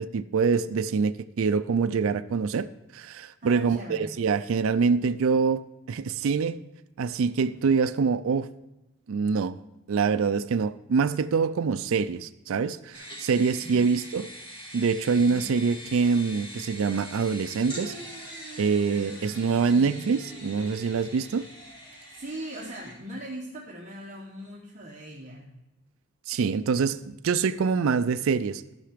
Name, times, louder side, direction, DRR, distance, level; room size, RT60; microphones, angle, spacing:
voice 1, 0.0-2.7 2.9-5.6 5.9-6.6 7.0-8.5 9.1-9.6 9.9-14.3 14.7-17.9 18.6-21.4 26.3-28.6, right 5 dB, 65° right, 11 dB, 0.4 m, -25 dB
voice 2, 3.4-4.1 13.6-14.0 15.2-15.5 18.9-20.1 20.9-21.1 21.9-25.5, right 1 dB, 35° right, -3 dB, 1.0 m, -41 dB
sound 1, 12.9-22.9, equal, 20° left, 2.9 m, -43 dB
13.5 x 5.7 x 5.1 m, 1.0 s
head